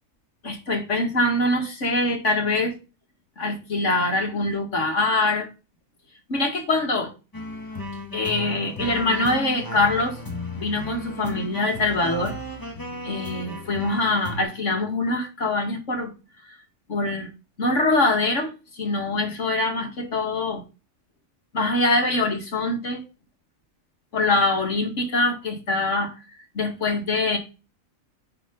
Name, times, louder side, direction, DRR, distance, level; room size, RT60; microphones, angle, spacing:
voice 1, 0.4-2.7 3.4-5.5 6.3-7.1 8.1-10.2 10.6-12.3 13.0-16.1 16.5-16.6 16.9-17.3 17.6-20.6 21.5-23.0 24.1-26.1 26.5-27.4, left 2 dB, 65° left, 2 dB, 2.4 m, -24 dB
sound 1, 7.3-14.4, left 1 dB, 15° left, 1.6 m, -34 dB
10.0 x 4.2 x 5.4 m, 0.31 s
omnidirectional pair, 1.4 m